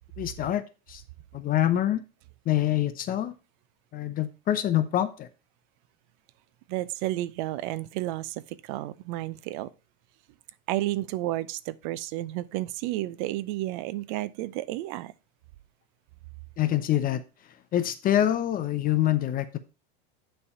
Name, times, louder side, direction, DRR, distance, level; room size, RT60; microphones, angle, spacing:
voice 1, 0.2-0.6 0.9-1.0 1.3-2.0 2.5-3.3 3.9-5.3 16.6-17.2 17.7-19.6, left 12 dB, 30° left, 0.7 m, -25 dB
voice 2, 6.7-9.7 10.7-15.1, right 16 dB, 55° right, 0.6 m, -31 dB
9.6 x 3.4 x 5.4 m
supercardioid pair, 120°, 29 cm